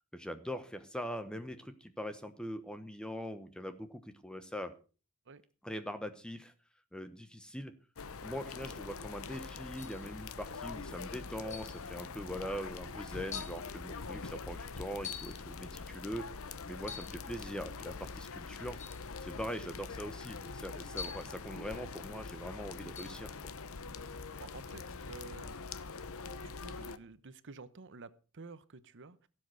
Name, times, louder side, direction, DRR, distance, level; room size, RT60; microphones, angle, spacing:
voice 1, 0.1-4.7 5.6-6.5 6.9-7.7 8.2-18.8 19.2-23.5, equal, 5° left, 9 dB, 1.0 m, -42 dB
sound 1, 8.0-27.0, left 4 dB, 65° left, 0.9 m, -44 dB
sound 2, 9.8-10.1 11.5-11.8 12.6-12.7 13.3-13.6 15.0-15.4 16.8-17.2 18.8-19.0 21.0-21.4 23.0-23.2, left 7 dB, 35° left, 1.2 m, -44 dB
voice 2, 24.4-25.5 26.4-29.3, right 3 dB, 55° right, 15 dB, 1.0 m, -51 dB
17.0 x 7.7 x 6.3 m, 0.36 s
head